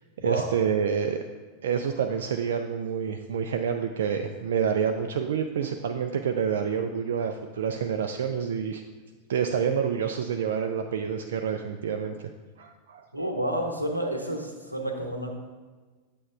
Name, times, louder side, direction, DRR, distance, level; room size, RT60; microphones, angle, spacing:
voice 1, 0.2-1.2 1.6-8.8 9.3-12.3 12.6-13.0, right 7 dB, 60° right, 5 dB, 0.3 m, -28 dB
voice 2, 13.1-15.3, right 1 dB, 85° right, 3 dB, 0.8 m, -30 dB
8.4 x 7.5 x 2.4 m, 1.4 s
figure-of-eight pair, 90°, 0 cm